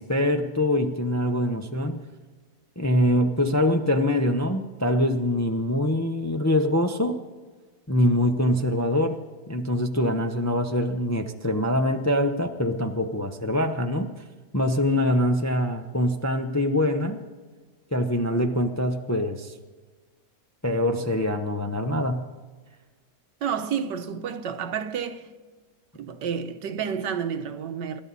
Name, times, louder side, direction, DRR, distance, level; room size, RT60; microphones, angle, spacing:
voice 1, 0.0-2.0 2.8-7.2 7.9-14.1 14.5-17.2 17.9-19.5 20.6-22.3, left 1 dB, 15° left, 0.5 m, -24 dB
voice 2, 23.4-25.3 25.9-28.0, right 7 dB, 85° right, 1.6 m, -30 dB
27.5 x 12.5 x 4.1 m
omnidirectional pair, 1.8 m